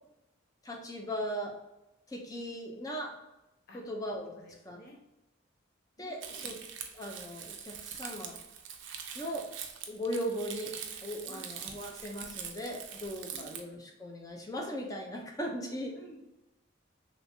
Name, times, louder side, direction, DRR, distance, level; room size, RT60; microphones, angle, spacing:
voice 1, 0.6-1.6 2.1-3.1 3.7-4.3 4.7-4.8 6.0-6.5 6.9-8.3 9.1-9.5 9.9-10.7 11.0-15.9, equal, 20° left, 0 dB, 0.5 m, -38 dB
voice 2, 4.3-5.0 6.0-6.5 11.2-11.5 13.3-13.6 15.9-16.2, equal, 50° left, 0 dB, 0.7 m, -53 dB
Crumpling crinkling, 6.2-13.6, right 7 dB, 65° right, 0.4 m, -43 dB
3.2 x 3.1 x 2.6 m, 0.94 s
head